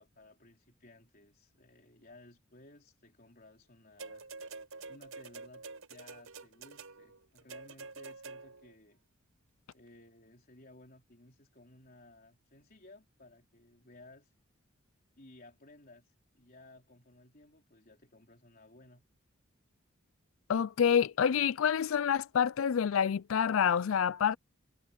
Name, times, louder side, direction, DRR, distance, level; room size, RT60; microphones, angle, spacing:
voice 1, 0.0-4.3 4.9-9.0 9.7-14.3 15.2-19.0, left 2 dB, 45° left, 3.9 m, -58 dB
sound 1, 4.0-8.7 9.7-9.8, right 4 dB, 85° right, 5.3 m, -47 dB
voice 2, 20.5-24.4, left 8 dB, 85° left, 0.4 m, -27 dB
head